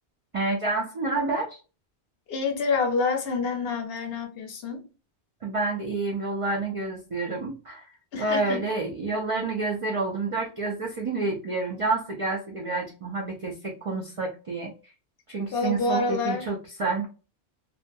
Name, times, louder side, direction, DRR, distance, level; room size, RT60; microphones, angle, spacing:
voice 1, 0.3-1.6 5.4-7.9 8.2-14.7 15.3-17.1, right 3 dB, 60° right, 0.3 m, -29 dB
voice 2, 2.3-4.8 8.1-8.6 15.5-16.4, left 4 dB, 65° left, 0.8 m, -27 dB
2.4 x 2.2 x 2.5 m
omnidirectional pair, 1.2 m